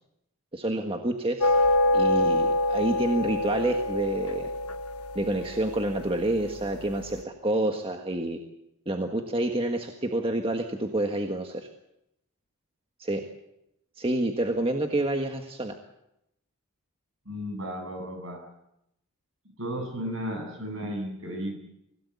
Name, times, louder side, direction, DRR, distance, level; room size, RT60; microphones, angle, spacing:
voice 1, 0.5-1.5 1.9-4.5 5.1-8.4 8.9-11.7 13.0-13.2 14.0-15.7, right 1 dB, 25° right, 4 dB, 1.6 m, -28 dB
sound 1, 1.4-6.9, left 2 dB, 90° left, 1.3 m, -26 dB
voice 2, 17.3-18.4 19.6-21.6, equal, 65° right, 5 dB, 7.8 m, -34 dB
25.5 x 17.5 x 8.3 m, 0.82 s
head